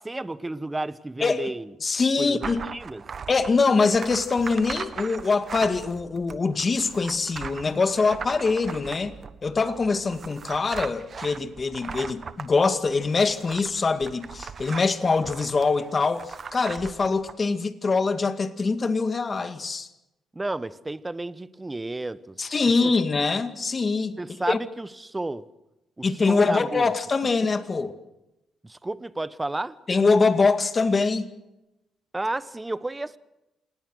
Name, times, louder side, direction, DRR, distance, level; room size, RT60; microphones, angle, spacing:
voice 1, 0.0-1.7 2.2-3.0 20.3-22.4 22.6-22.9 24.2-25.5 26.0-26.9 28.6-29.8 32.1-33.2, right 2 dB, 15° right, 1.1 m, -32 dB
voice 2, 1.8-2.6 3.3-9.1 9.4-19.9 22.4-24.1 24.5-24.6 26.0-27.9 29.9-31.3, left 4 dB, 35° left, 2.1 m, -23 dB
sound 1, 2.4-17.3, right 6 dB, 45° right, 1.3 m, -39 dB
27.0 x 20.0 x 6.5 m
cardioid pair, 90°, 0 cm